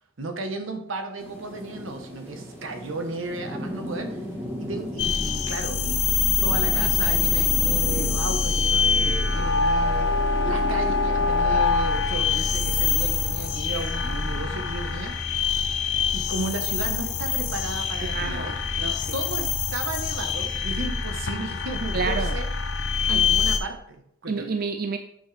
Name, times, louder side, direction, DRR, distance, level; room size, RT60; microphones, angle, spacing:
voice 1, 0.2-4.2 4.6-6.0 6.4-15.2 16.1-18.6 19.1-22.5 23.1-24.5, right 2 dB, 80° right, 5 dB, 1.1 m, -34 dB
sound 1, 1.2-19.3, equal, 10° right, 1.2 m, -39 dB
sound 2, 5.0-23.6, left 5 dB, 55° left, 0.7 m, -24 dB
voice 2, 18.0-19.2 21.9-22.3 23.1-23.3 24.3-25.0, right 5 dB, 45° right, 7 dB, 0.4 m, -30 dB
8.4 x 6.0 x 3.3 m, 0.72 s
head